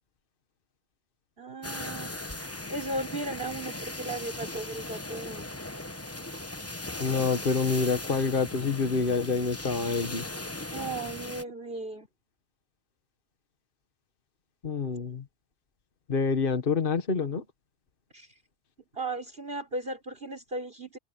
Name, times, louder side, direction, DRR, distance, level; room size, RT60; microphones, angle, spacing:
voice 1, 1.4-2.2 2.7-5.5 10.7-12.1 18.1-18.3 18.9-21.0, right 2 dB, 55° right, 5.0 m, -36 dB
sound 1, 1.6-11.4, left 2 dB, 15° left, 1.0 m, -38 dB
voice 2, 7.0-10.3 14.6-15.2 16.1-17.4, left 4 dB, 50° left, 1.5 m, -27 dB
omnidirectional pair, 1.2 m